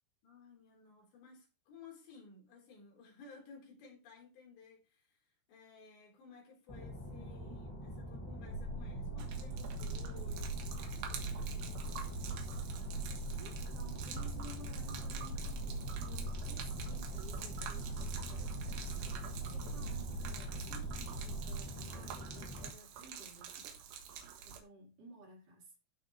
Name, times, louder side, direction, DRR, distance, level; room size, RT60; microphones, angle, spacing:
voice 1, 0.2-12.7, left 4 dB, 90° left, 6.4 m, -57 dB
sound 1, 6.7-22.7, equal, 15° left, 0.7 m, -45 dB
sound 2, 8.5-21.6, right 2 dB, 70° left, 3.2 m, -42 dB
Gurgling / Liquid, 9.2-24.6, right 8 dB, 90° right, 3.7 m, -49 dB
voice 2, 13.4-23.6 24.4-25.8, right 2 dB, 55° right, 5.6 m, -55 dB
15.5 x 6.1 x 3.3 m
omnidirectional pair, 4.9 m